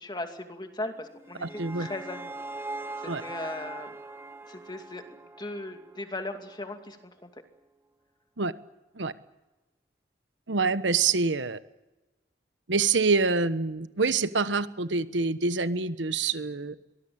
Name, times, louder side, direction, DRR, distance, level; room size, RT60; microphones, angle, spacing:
voice 1, 0.0-2.4 3.2-4.0 4.5-7.3, left 2 dB, 25° left, 5 dB, 2.4 m, -38 dB
sound 1, 1.0-6.2, right 2 dB, 15° right, 1.2 m, -41 dB
voice 2, 1.4-1.9 3.1-3.2 8.4-8.5 8.9-9.1 10.5-11.6 12.7-16.7, right 4 dB, 90° right, 13 dB, 1.2 m, -26 dB
23.5 x 19.5 x 8.7 m, 1.0 s
head